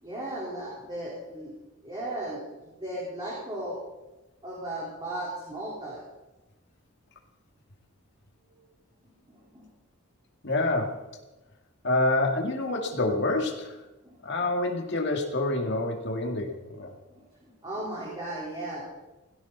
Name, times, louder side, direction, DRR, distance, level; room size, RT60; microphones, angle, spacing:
voice 1, 0.0-1.5 1.8-3.8 4.4-6.0 9.3-9.6 14.0-14.2 17.1-18.8, right 1 dB, 20° right, -6 dB, 4.1 m, -36 dB
voice 2, 10.4-11.0 11.8-13.8 14.2-16.9, left 2 dB, 55° left, 2 dB, 2.3 m, -27 dB
17.5 x 16.0 x 4.1 m, 1.0 s
head